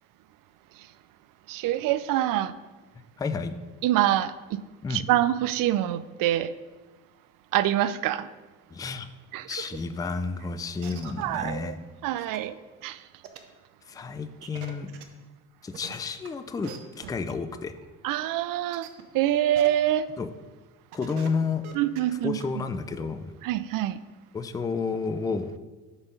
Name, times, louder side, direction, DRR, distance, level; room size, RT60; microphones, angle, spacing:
voice 1, 1.5-2.5 3.8-4.6 4.9-6.5 7.5-8.3 9.3-9.5 11.2-11.7 12.0-12.6 12.8-13.0 18.0-18.9 19.1-20.1 21.8-22.4 23.4-24.0, right 13 dB, 50° right, 14 dB, 0.5 m, -25 dB
voice 2, 3.2-3.6 4.8-5.0 8.7-9.1 9.5-11.8 13.9-14.9 15.6-17.7 20.2-20.3 20.9-21.6 22.2-23.3 24.3-25.6, left 4 dB, 10° left, 11 dB, 0.3 m, -31 dB
sound 1, 9.8-9.9 10.3-10.4 10.8-11.4 12.0-12.1 12.3-12.4 13.2-13.4 14.4-15.0 15.7-16.3 16.6-16.8 17.0-17.3 17.8-17.9 18.7-19.0 19.5-19.7 20.1-20.2 20.6-20.7 20.9-21.3 21.6-22.0 22.4-22.5, right 9 dB, 85° right, 0.7 m, -42 dB
8.1 x 3.6 x 5.3 m, 1.3 s
hypercardioid pair, 60°, 42 cm